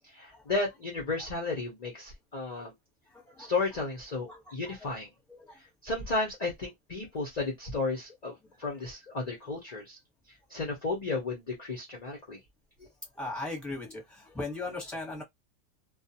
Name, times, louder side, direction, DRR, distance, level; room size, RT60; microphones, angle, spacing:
voice 1, 0.1-2.7 3.4-5.1 5.8-10.0 10.5-12.4, left 3 dB, 40° left, 0.6 m, -33 dB
voice 2, 13.2-14.0 14.3-15.2, left 2 dB, ahead, 1.0 m, -37 dB
2.4 x 2.3 x 2.8 m
omnidirectional pair, 1.6 m